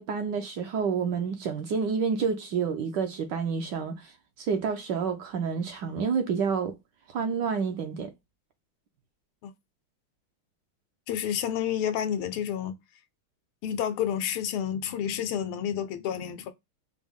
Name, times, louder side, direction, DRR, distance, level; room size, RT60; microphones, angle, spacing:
voice 1, 0.0-4.1 4.4-6.8 7.1-8.1, right 6 dB, 70° right, 1.1 m, -29 dB
voice 2, 11.1-12.8 13.6-16.5, left 9 dB, 85° left, 1.5 m, -30 dB
5.0 x 2.1 x 3.5 m
omnidirectional pair, 2.3 m